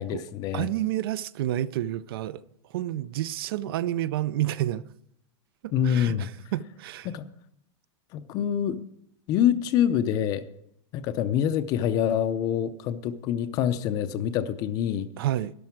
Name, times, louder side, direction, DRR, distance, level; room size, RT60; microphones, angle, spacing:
voice 1, 0.0-0.7 5.7-6.3 7.1-7.3 8.1-8.8 9.3-10.4 10.9-15.1, left 9 dB, 25° left, 0.6 m, -26 dB
voice 2, 0.5-4.8 5.6-7.1 15.2-15.5, right 13 dB, 55° right, 0.5 m, -30 dB
13.0 x 11.5 x 4.6 m
supercardioid pair, 170°, 15 cm